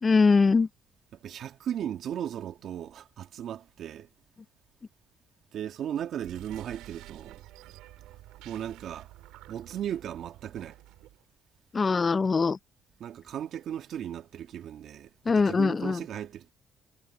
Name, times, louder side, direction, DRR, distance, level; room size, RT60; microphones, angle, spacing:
voice 1, 0.0-0.7 11.7-12.6 15.3-16.0, left 4 dB, 30° left, 0.5 m, -22 dB
voice 2, 1.2-4.1 5.5-7.4 8.4-9.1 9.5-10.8 13.0-16.5, right 10 dB, 65° right, 2.0 m, -36 dB
sound 1, 6.2-11.2, right 16 dB, 90° right, 3.0 m, -50 dB
cardioid pair, 95°, 0 cm